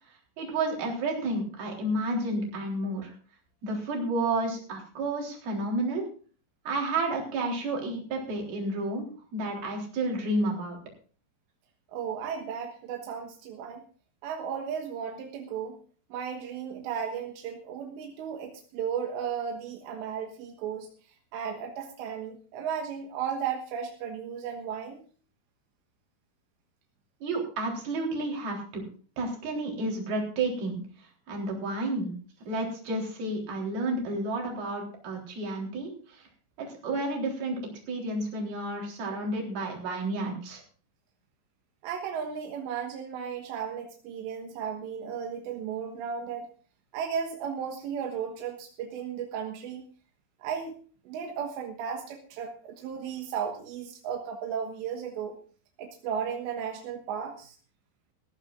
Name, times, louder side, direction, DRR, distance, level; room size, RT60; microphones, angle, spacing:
voice 1, 0.4-3.1 3.6-6.0 6.7-9.1 9.3-10.8 27.2-28.8 29.2-30.8 31.3-32.1 32.5-36.3 36.6-37.6 37.9-40.6, right 2 dB, 60° right, -1 dB, 5.5 m, -31 dB
voice 2, 11.9-13.8 14.2-15.8 16.1-20.9 21.3-25.0 41.8-46.5 46.9-49.8 50.4-50.8 51.1-55.4 55.8-57.6, right 7 dB, 90° right, 3 dB, 3.7 m, -35 dB
20.5 x 14.5 x 2.5 m, 0.41 s
omnidirectional pair, 4.9 m